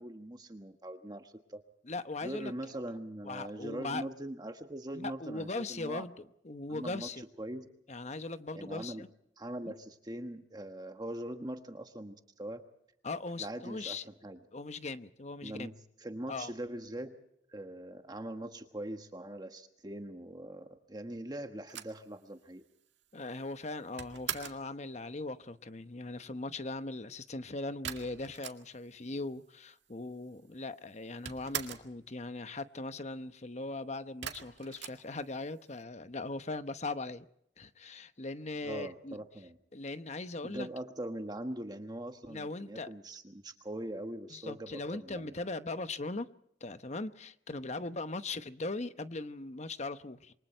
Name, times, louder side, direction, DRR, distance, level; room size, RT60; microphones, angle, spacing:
voice 1, 0.0-1.6 2.2-6.1 6.7-7.1 7.4-7.7 8.5-9.1 9.4-12.6 13.4-14.4 15.4-17.1 17.5-22.6 38.6-39.6 40.4-45.3, right 1 dB, 20° right, 1.3 m, -42 dB
voice 2, 1.9-2.5 3.2-4.0 4.9-7.2 7.9-9.1 9.6-9.7 13.0-14.0 14.5-15.7 16.3-16.5 23.1-37.3 37.6-39.2 39.7-40.7 42.3-42.9 44.3-46.3 46.6-50.3, left 2 dB, 40° left, 0.9 m, -39 dB
sound 1, 21.7-24.7 27.8-29.0 29.3-29.4 29.6-30.4 30.6-32.0 34.2-35.7, right 9 dB, 80° right, 2.0 m, -42 dB
27.5 x 24.0 x 4.4 m
head